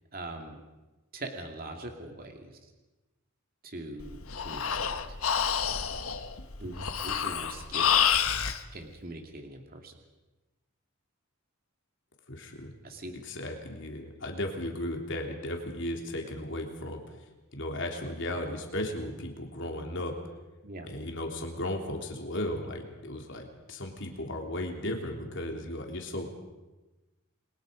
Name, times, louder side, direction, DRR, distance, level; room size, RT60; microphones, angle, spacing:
voice 1, 0.1-0.6 1.1-2.7 3.6-5.2 6.6-6.7 7.0-8.3 8.7-9.9 12.8-13.1 20.6-20.9, right 2 dB, 45° right, 4 dB, 2.5 m, -42 dB
Breathing, 4.0-8.6, left 8 dB, 85° left, 1.5 m, -28 dB
voice 2, 12.3-12.7 13.2-20.1 20.8-26.3, left 1 dB, 60° left, 2 dB, 3.3 m, -35 dB
29.0 x 22.0 x 5.3 m, 1.1 s
head